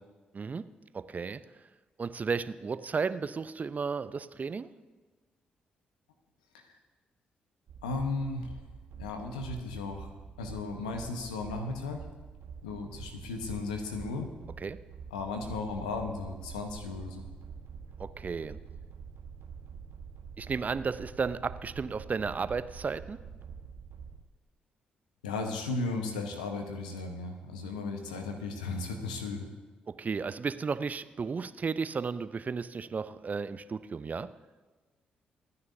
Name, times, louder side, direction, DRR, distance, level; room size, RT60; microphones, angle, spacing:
voice 1, 0.9-1.4 2.0-4.7 14.6-14.8 18.0-18.6 20.4-23.2 29.9-34.3, right 5 dB, 40° right, 14 dB, 0.6 m, -33 dB
sound 1, 7.7-24.2, right 6 dB, 60° right, 1.3 m, -46 dB
voice 2, 7.8-8.5 9.0-10.1 10.4-12.0 12.6-14.3 15.1-17.2 25.2-29.5, left 3 dB, 85° left, 5 dB, 1.1 m, -35 dB
25.5 x 9.6 x 2.7 m, 1.2 s
hypercardioid pair, 40°, 4 cm